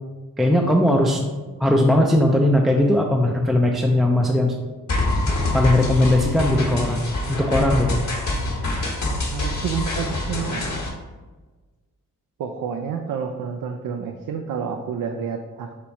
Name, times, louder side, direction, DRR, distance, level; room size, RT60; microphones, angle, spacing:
voice 1, 0.4-1.2 1.6-4.5 5.5-7.0 7.4-8.0, left 1 dB, ahead, 0 dB, 0.4 m, -18 dB
sound 1, 4.9-10.9, left 2 dB, 50° left, 1.1 m, -25 dB
voice 2, 9.3-10.7 12.4-15.8, right 7 dB, 65° right, 4 dB, 0.5 m, -29 dB
4.5 x 2.4 x 4.0 m, 1.3 s
cardioid pair, 60°, 34 cm